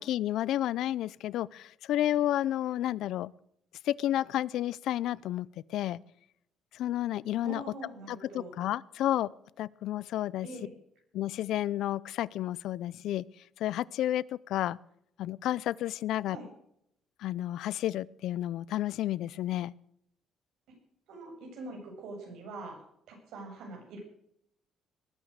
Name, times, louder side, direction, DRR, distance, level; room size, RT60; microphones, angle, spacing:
voice 1, 0.0-3.3 3.8-6.0 6.7-7.6 8.1-9.3 9.6-10.5 11.1-13.3 13.6-14.8 15.2-16.4 17.2-19.7, left 13 dB, 70° left, 22 dB, 0.5 m, -31 dB
voice 2, 7.4-8.5 10.4-10.7 16.3-16.5 21.1-22.8 23.1-24.0, right 2 dB, 85° right, 1 dB, 7.4 m, -43 dB
20.0 x 9.3 x 6.5 m, 0.74 s
cardioid pair, 170°, 0 cm